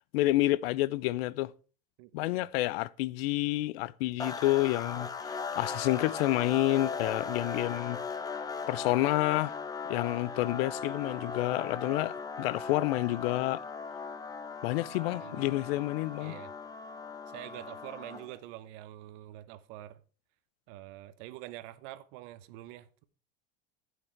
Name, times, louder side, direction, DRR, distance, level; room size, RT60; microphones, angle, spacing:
voice 1, 0.1-1.5 2.1-8.0 8.7-9.6 9.9-13.6 14.6-16.3, left 17 dB, 85° left, 0.6 m, -29 dB
voice 2, 2.0-2.5 15.1-15.5 16.2-16.5 17.3-20.0 20.7-23.1, right 15 dB, 70° right, 0.9 m, -46 dB
sound 1, 4.2-18.4, left 5 dB, 15° left, 0.7 m, -38 dB
9.5 x 8.2 x 4.5 m
supercardioid pair, 135°, 29 cm